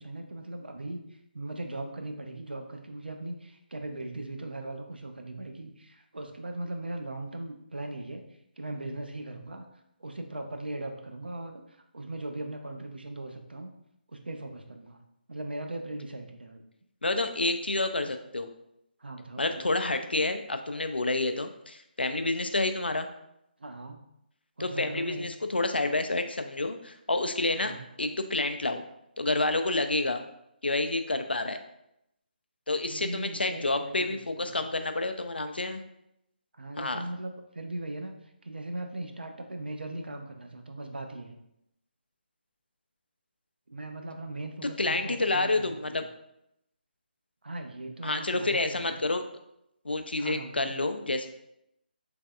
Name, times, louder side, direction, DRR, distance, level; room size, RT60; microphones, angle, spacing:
voice 1, 0.0-8.2 8.6-9.7 10.0-13.7 14.1-15.0 15.3-16.6 19.0-19.7 23.6-24.0 24.6-25.3 27.5-27.8 32.8-34.6 36.5-38.1 38.4-41.4 43.7-46.0 47.4-49.0 50.2-50.8, right 2 dB, 70° right, 5 dB, 0.5 m, -39 dB
voice 2, 17.0-18.5 19.4-23.1 24.6-27.7 28.0-28.8 29.2-30.2 30.6-31.6 32.7-35.8 36.8-37.0 44.8-46.0 48.0-49.2 49.8-51.3, left 2 dB, 75° left, 7 dB, 0.3 m, -29 dB
3.3 x 3.2 x 2.2 m, 0.81 s
figure-of-eight pair, 145°, 6 cm